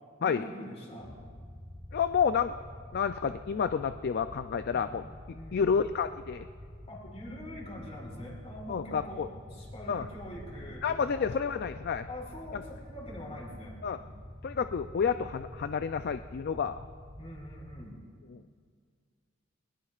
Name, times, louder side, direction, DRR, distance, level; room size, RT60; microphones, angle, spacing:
voice 1, 0.2-1.1 4.7-5.0 5.3-5.7 6.9-11.3 12.1-13.8 17.2-18.0, equal, 35° left, -2 dB, 4.3 m, -44 dB
sound 1, 1.0-17.8, equal, 10° right, 2.3 m, -47 dB
voice 2, 1.9-2.5 2.9-5.0 5.5-6.5 8.7-9.3 9.9-10.1 10.8-12.1 12.5-12.6 13.8-14.0 14.4-16.8, left 6 dB, 50° left, 10 dB, 0.4 m, -29 dB
22.0 x 20.5 x 2.4 m, 2.1 s
head